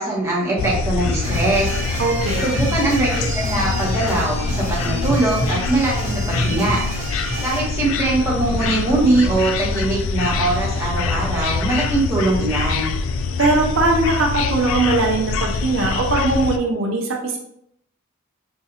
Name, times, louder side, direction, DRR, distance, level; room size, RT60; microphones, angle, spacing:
voice 1, 0.0-1.8 2.4-6.8 7.4-12.9, right 2 dB, 15° right, -5 dB, 1.0 m, -21 dB
sound 1, 0.6-16.6, left 4 dB, 70° left, 0.3 m, -24 dB
sound 2, 1.2-7.6, right 1 dB, 35° right, 1.3 m, -28 dB
voice 2, 2.0-2.4 13.4-17.4, right 2 dB, 70° right, 0 dB, 0.7 m, -20 dB
5.2 x 2.4 x 2.9 m, 0.72 s
head